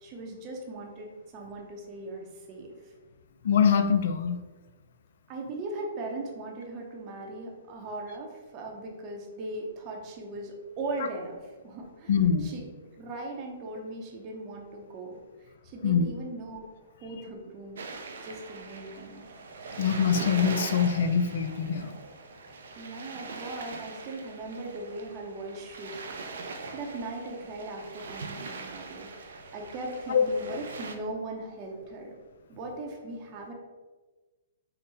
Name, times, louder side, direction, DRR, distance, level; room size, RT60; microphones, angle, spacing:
voice 1, 0.0-2.8 5.3-12.1 12.4-12.6 13.0-15.2 15.6-16.6 17.0-18.0 18.2-19.3 22.8-32.1 32.5-33.5, right 2 dB, 35° right, 0 dB, 0.7 m, -39 dB
voice 2, 3.4-4.4 12.1-12.5 15.8-16.1 19.8-22.0 30.1-30.3, left 7 dB, 65° left, 8 dB, 0.4 m, -24 dB
sound 1, 17.7-30.9, right 4 dB, 75° right, 0.4 m, -41 dB
3.8 x 2.1 x 4.0 m, 1.3 s
hypercardioid pair, 130°, 0 cm